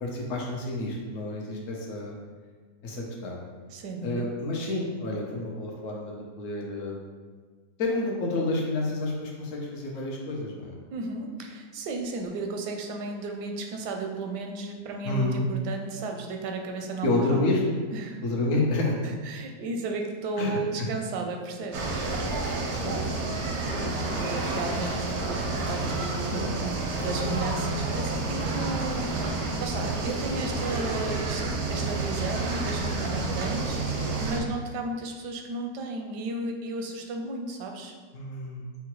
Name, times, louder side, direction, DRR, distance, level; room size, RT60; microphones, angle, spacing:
voice 1, 0.0-2.1 2.8-3.4 4.0-6.9 7.8-10.8 15.0-15.4 17.0-17.6 18.2-19.0 20.4-20.9 22.2-22.3 22.7-23.0 29.8-29.9 38.1-38.6, left 2 dB, 60° left, -1 dB, 1.0 m, -29 dB
voice 2, 3.7-4.3 10.9-17.6 17.9-18.2 19.0-21.9 23.8-26.7 27.0-37.9, right 3 dB, 85° right, 3 dB, 1.2 m, -34 dB
sound 1, 21.7-34.4, right 2 dB, 65° right, 0.7 m, -29 dB
5.6 x 2.2 x 2.9 m, 1.5 s
omnidirectional pair, 1.7 m